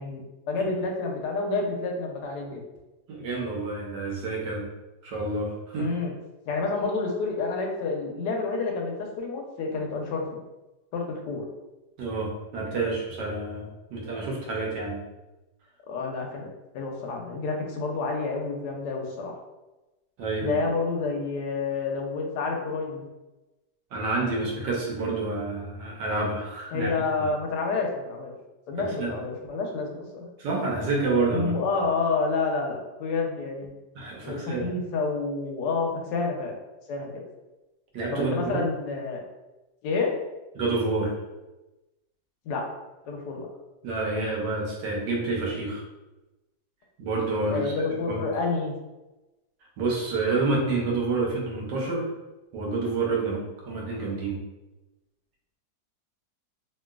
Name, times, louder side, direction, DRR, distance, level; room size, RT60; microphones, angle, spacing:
voice 1, 0.0-2.6 5.8-6.1 6.5-10.4 10.9-11.4 15.9-16.5 16.7-19.3 20.4-23.1 26.7-28.3 28.7-30.3 31.3-33.7 34.2-36.5 36.9-37.2 38.1-39.2 39.8-40.1 42.5-42.7 43.1-43.5 47.5-48.7, left 4 dB, 75° left, 1 dB, 1.1 m, -29 dB
voice 2, 3.1-4.7 5.0-5.9 12.0-15.0 20.2-20.6 23.9-26.9 27.2-27.3 29.0-29.1 30.4-31.5 33.9-34.7 37.9-38.6 40.5-41.1 43.8-45.8 47.0-47.7 48.1-48.2 49.8-52.1 52.5-54.4, right 3 dB, 75° right, -2 dB, 1.4 m, -28 dB
3.0 x 2.8 x 2.3 m, 1.0 s
omnidirectional pair, 2.0 m